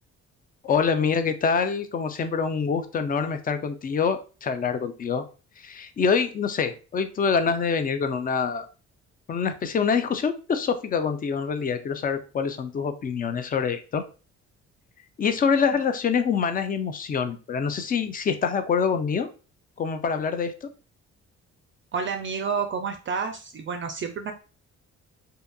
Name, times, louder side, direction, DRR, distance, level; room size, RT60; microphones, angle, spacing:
voice 1, 0.6-5.2 5.6-8.7 9.3-14.0 15.2-19.3 19.8-20.7, left 6 dB, 30° left, 9 dB, 0.4 m, -25 dB
voice 2, 21.9-24.3, right 5 dB, 40° right, 5 dB, 0.4 m, -29 dB
2.7 x 2.4 x 2.2 m, 0.34 s
cardioid pair, 90°, 30 cm